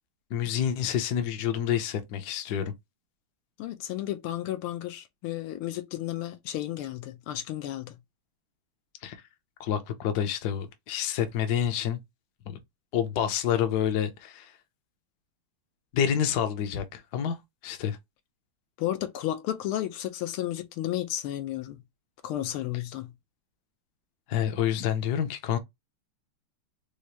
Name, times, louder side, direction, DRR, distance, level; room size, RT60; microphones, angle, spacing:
voice 1, 0.3-2.7 9.0-9.2 9.6-12.0 12.5-12.6 12.9-14.5 15.9-17.4 17.6-18.0 24.3-25.6, left 9 dB, 65° left, 1.1 m, -28 dB
voice 2, 3.6-8.0 18.8-21.8 22.2-23.1, left 13 dB, 85° left, 1.5 m, -33 dB
4.9 x 2.1 x 2.8 m
omnidirectional pair, 2.4 m